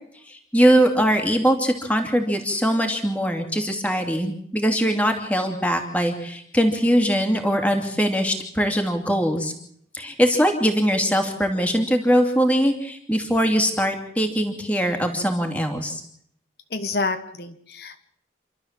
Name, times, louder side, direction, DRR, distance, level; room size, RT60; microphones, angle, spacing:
voice 1, 0.3-9.5 9.9-16.0, equal, 10° left, 4 dB, 2.6 m, -21 dB
voice 2, 16.7-18.0, left 3 dB, 60° left, 7 dB, 1.3 m, -28 dB
28.5 x 12.5 x 7.5 m, 0.69 s
head